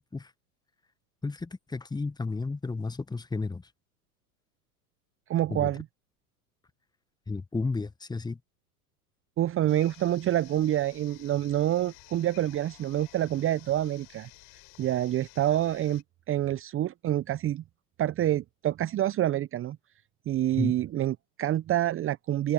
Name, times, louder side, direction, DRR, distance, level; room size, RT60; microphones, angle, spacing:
voice 1, 1.2-3.7 5.5-5.7 7.3-8.4 20.6-20.7, left 3 dB, 10° left, 1.3 m, -32 dB
voice 2, 5.3-5.8 9.4-14.3 14.8-17.6 18.0-19.8 20.3-22.5, right 12 dB, 30° right, 1.0 m, -27 dB
sound 1, 9.7-16.0, left 28 dB, 50° left, 6.1 m, -53 dB
open air
figure-of-eight pair, 85°, 46 cm